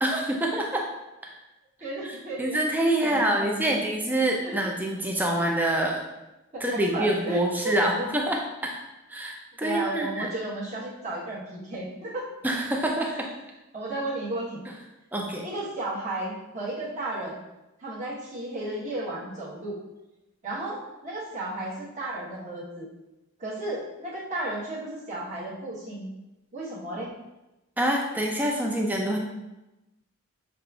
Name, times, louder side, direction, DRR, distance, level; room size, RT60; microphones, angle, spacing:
voice 1, 0.0-0.9 1.2-1.4 2.4-6.0 6.6-8.8 9.1-10.3 12.4-13.3 15.1-15.5 27.8-29.2, right 1 dB, 10° right, 0 dB, 0.4 m, -26 dB
voice 2, 1.8-2.6 3.0-3.8 4.4-4.5 6.5-8.1 9.6-12.3 13.0-13.2 13.7-14.6 15.4-17.4 17.8-19.8 20.4-22.9 23.4-26.1 26.5-27.1, right 1 dB, 35° right, -7 dB, 1.0 m, -34 dB
6.4 x 2.4 x 2.3 m, 0.99 s
head